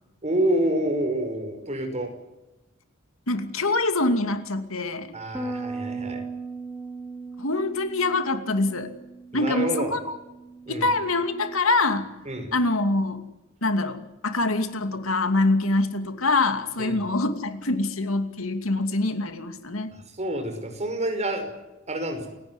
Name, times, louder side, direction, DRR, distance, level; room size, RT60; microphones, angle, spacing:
voice 1, 0.2-2.1 5.1-6.2 9.3-9.9 10.7-10.9 12.3-12.5 16.8-17.0 19.9-21.5 21.9-22.3, right 1 dB, 30° right, 5 dB, 5.6 m, -28 dB
voice 2, 3.3-5.1 7.4-8.9 9.3-10.1 10.7-12.1 12.5-13.2 13.6-19.9, left 2 dB, 70° left, 8 dB, 2.6 m, -24 dB
Bass guitar, 5.3-11.6, right 3 dB, 5° right, 1.4 m, -38 dB
29.0 x 17.5 x 9.8 m, 1.0 s
head